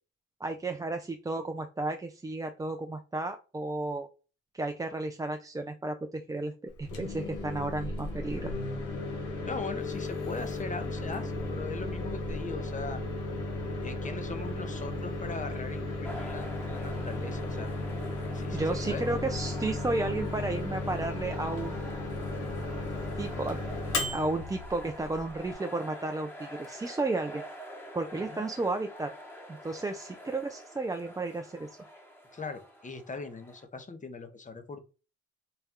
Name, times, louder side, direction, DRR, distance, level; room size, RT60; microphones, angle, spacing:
voice 1, 0.4-4.1 4.5-8.5 18.5-21.8 23.2-23.6 24.1-27.4 27.9-29.1 29.6-31.7, right 2 dB, 10° right, 5 dB, 0.4 m, -33 dB
Microwave oven, 6.7-25.5, left 2 dB, 90° left, 1.2 m, -35 dB
voice 2, 9.4-13.0 13.8-17.7 18.3-19.0 28.1-28.4 32.3-34.8, left 4 dB, 25° left, 9 dB, 0.8 m, -40 dB
sound 1, 16.0-33.6, equal, 5° left, 1.1 m, -47 dB
4.2 x 2.2 x 3.5 m, 0.33 s
cardioid pair, 90°, 30 cm